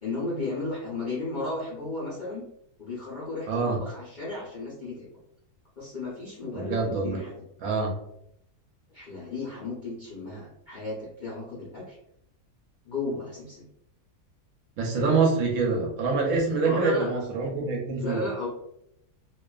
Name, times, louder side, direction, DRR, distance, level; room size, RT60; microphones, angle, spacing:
voice 1, 0.0-2.4 2.8-5.1 5.8-7.4 8.9-12.0 12.8-13.7 14.9-15.3 16.6-17.2 18.0-18.5, left 2 dB, 60° left, -7 dB, 0.5 m, -34 dB
voice 2, 3.5-3.8 6.5-7.2 7.6-7.9 14.8-18.2, right 4 dB, 70° right, -1 dB, 1.0 m, -25 dB
2.4 x 2.3 x 2.2 m, 0.77 s
omnidirectional pair, 1.7 m